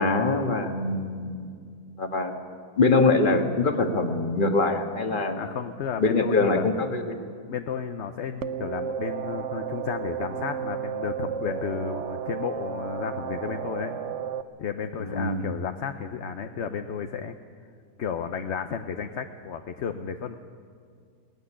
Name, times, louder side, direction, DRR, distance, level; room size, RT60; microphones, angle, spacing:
voice 1, 0.0-1.5 2.0-2.3 2.8-5.4 6.0-7.2 15.0-15.5, left 3 dB, 35° left, 4 dB, 1.7 m, -23 dB
voice 2, 5.2-6.7 7.5-13.9 14.6-17.4 18.0-20.3, left 7 dB, 60° left, 7 dB, 1.0 m, -33 dB
sound 1, 8.4-14.4, right 8 dB, 65° right, 1.0 m, -33 dB
18.5 x 14.5 x 10.0 m, 2.2 s
omnidirectional pair, 1.4 m